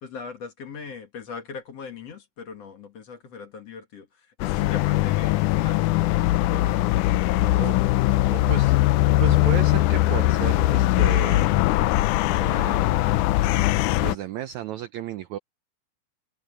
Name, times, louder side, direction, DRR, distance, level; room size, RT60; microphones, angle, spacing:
voice 1, 0.0-7.0 7.3-7.7, left 5 dB, 50° left, 2.8 m, -40 dB
sound 1, 4.4-14.1, left 16 dB, 80° left, 1.8 m, -21 dB
voice 2, 8.3-11.6 12.4-13.2 14.0-15.4, right 11 dB, 80° right, 1.7 m, -34 dB
omnidirectional pair, 4.1 m